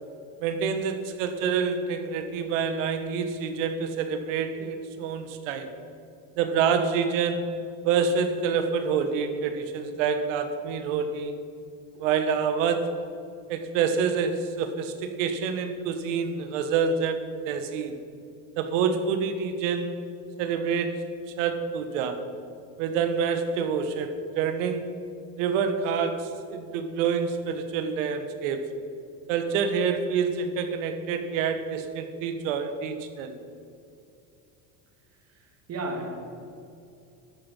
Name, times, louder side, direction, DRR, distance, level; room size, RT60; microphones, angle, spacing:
voice 1, 0.4-5.7 6.4-7.6 7.8-11.3 12.0-13.0 13.5-18.0 18.6-20.0 20.4-21.1 21.4-22.3 22.8-24.9 25.4-28.7 29.3-33.3, right 6 dB, 90° right, 8 dB, 1.4 m, -27 dB
voice 2, 35.7-36.3, right 2 dB, 40° right, 2 dB, 2.3 m, -33 dB
12.0 x 9.3 x 5.5 m, 2.5 s
supercardioid pair, 115°, 37 cm